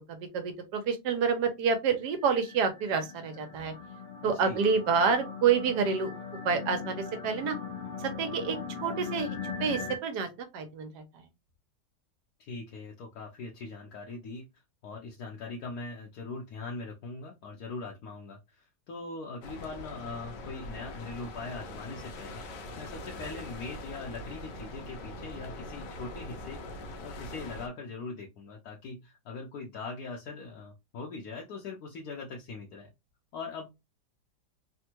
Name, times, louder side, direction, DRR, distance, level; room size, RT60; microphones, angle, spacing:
voice 1, 0.1-3.7 4.2-6.1 6.4-7.6 8.0-11.2, right 6 dB, 75° right, 1.2 m, -28 dB
sound 1, 2.0-10.0, left 6 dB, 55° left, 0.7 m, -40 dB
voice 2, 4.2-4.6 12.4-14.5 14.8-32.9 33.3-33.7, left 3 dB, 70° left, 1.1 m, -41 dB
sound 2, 19.4-27.7, left 1 dB, 85° left, 1.3 m, -42 dB
3.4 x 2.1 x 2.9 m
omnidirectional pair, 1.8 m